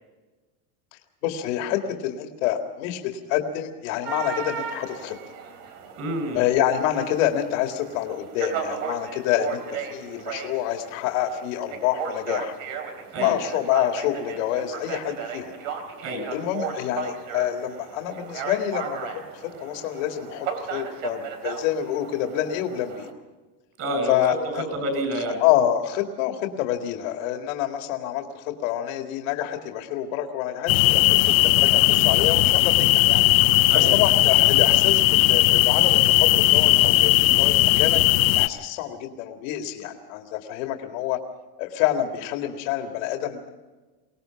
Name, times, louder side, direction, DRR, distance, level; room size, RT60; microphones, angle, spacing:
voice 1, 1.2-5.2 6.3-12.5 13.2-15.5 16.3-23.1 24.1-24.6 25.4-31.3 31.6-33.2 33.7-38.0 38.4-41.2 41.6-43.5, left 11 dB, 75° left, 4 dB, 2.2 m, -27 dB
sound 1, 4.1-23.1, right 7 dB, 85° right, 3.3 m, -36 dB
voice 2, 6.0-6.5 13.1-13.4 16.0-16.3 23.8-25.4 33.7-33.9, right 1 dB, 40° right, 6 dB, 7.2 m, -28 dB
sound 2, 30.7-38.5, left 19 dB, 90° left, 0.9 m, -18 dB
23.5 x 18.5 x 5.9 m, 1.3 s
supercardioid pair, 150°, 40 cm